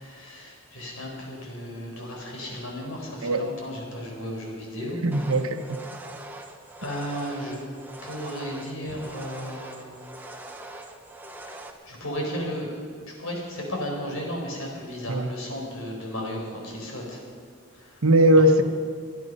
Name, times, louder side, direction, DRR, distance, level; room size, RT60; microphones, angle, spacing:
voice 1, 0.0-5.0 6.8-7.6 8.0-10.0 11.5-12.7 13.1-17.2 17.7-18.0, equal, 80° left, 0 dB, 4.4 m, -34 dB
voice 2, 5.0-5.8 15.1-15.3 18.0-18.6, right 1 dB, 90° right, 5 dB, 1.0 m, -19 dB
sound 1, 5.1-11.7, right 2 dB, 10° right, 0.9 m, -42 dB
23.5 x 10.5 x 5.5 m, 2.1 s
head